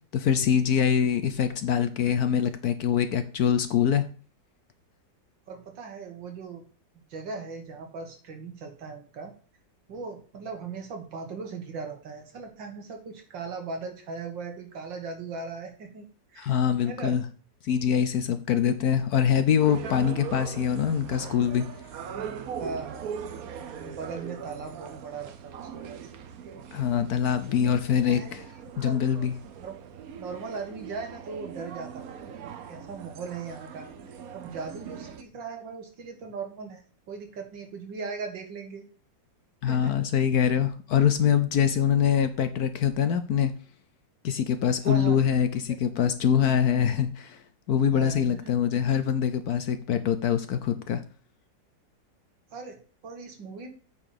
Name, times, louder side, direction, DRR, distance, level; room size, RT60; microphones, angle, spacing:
voice 1, 0.1-4.0 16.4-17.3 17.6-21.7 26.7-28.5 28.8-29.4 39.6-43.5 44.2-47.4 47.7-51.0, left 8 dB, 65° left, 10 dB, 1.0 m, -24 dB
voice 2, 5.5-6.6 7.1-9.3 9.9-16.6 16.8-17.2 22.6-23.1 23.8-26.0 28.0-28.3 28.8-29.0 29.6-29.7 30.2-32.1 32.7-33.9 34.3-38.9 39.7-40.1 44.8-45.2 47.9-48.5 52.5-53.7, right 4 dB, 75° right, 3 dB, 2.4 m, -38 dB
sound 1, 19.6-35.2, right 7 dB, 60° right, 1.1 m, -40 dB
8.7 x 4.2 x 6.6 m, 0.39 s
omnidirectional pair, 2.0 m